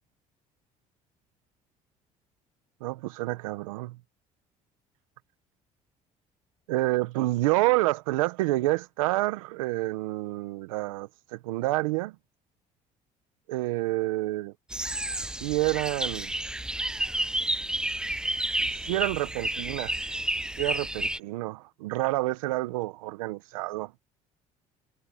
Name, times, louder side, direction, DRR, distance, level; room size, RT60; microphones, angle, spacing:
voice 1, 2.8-3.9 6.7-12.1 13.5-14.5 15.4-16.3 18.6-20.0 20.6-23.9, right 19 dB, 90° right, 1.3 m, -28 dB
sound 1, 14.7-21.2, right 1 dB, 5° right, 0.4 m, -31 dB
hypercardioid pair, 65°, 17 cm